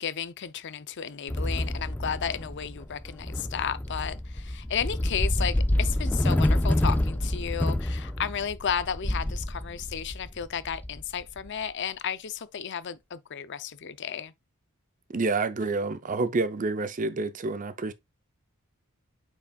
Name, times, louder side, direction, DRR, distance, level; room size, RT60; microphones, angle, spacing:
voice 1, 0.0-14.3, left 7 dB, 55° left, 0.5 m, -33 dB
sound 1, 1.3-11.5, left 1 dB, 10° left, 0.4 m, -28 dB
voice 2, 15.1-17.9, right 3 dB, 35° right, 0.6 m, -28 dB
8.6 x 4.8 x 2.3 m
head